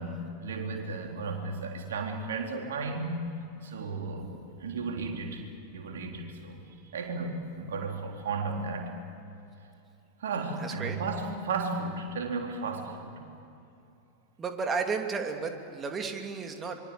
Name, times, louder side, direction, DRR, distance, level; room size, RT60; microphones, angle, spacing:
voice 1, 0.0-3.2 3.6-6.7 6.9-8.9 10.2-13.2, right 3 dB, 60° right, 2 dB, 3.8 m, -34 dB
voice 2, 10.6-11.0 14.4-16.8, right 5 dB, 20° right, 5 dB, 2.7 m, -33 dB
26.5 x 24.0 x 8.2 m, 2.7 s
figure-of-eight pair, 90°, 0 cm